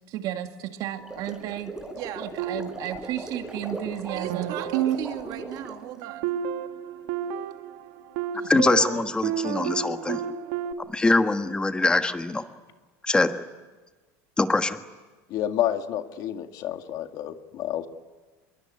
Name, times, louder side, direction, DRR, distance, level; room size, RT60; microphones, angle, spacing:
voice 1, 0.0-6.3 8.3-8.6, right 12 dB, 60° right, 7 dB, 2.1 m, -34 dB
sound 1, 0.9-5.8, right 2 dB, 10° right, 4.2 m, -38 dB
sound 2, 2.4-3.6 4.1-10.7, right 10 dB, 80° right, 2.0 m, -31 dB
voice 2, 8.5-10.2 10.9-12.4 13.0-13.3 14.4-14.8, left 2 dB, 10° left, 8 dB, 1.5 m, -23 dB
voice 3, 15.3-17.9, left 11 dB, 55° left, 7 dB, 2.0 m, -29 dB
24.5 x 22.5 x 9.9 m, 1.3 s
supercardioid pair, 125°, 7 cm